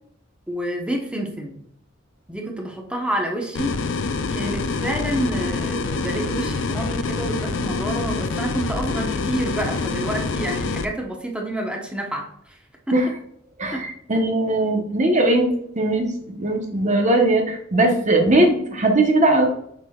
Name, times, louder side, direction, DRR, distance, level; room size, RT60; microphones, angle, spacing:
voice 1, 0.5-1.6 2.3-3.8 4.3-12.6 12.9-13.0 13.7-13.8 17.8-17.9, right 1 dB, 5° right, 1 dB, 1.1 m, -28 dB
sound 1, 3.5-10.8, left 4 dB, 65° left, 0.5 m, -26 dB
voice 2, 13.6-15.5 15.7-19.5, right 2 dB, 35° right, 4 dB, 1.1 m, -19 dB
7.9 x 6.2 x 2.4 m, 0.71 s
head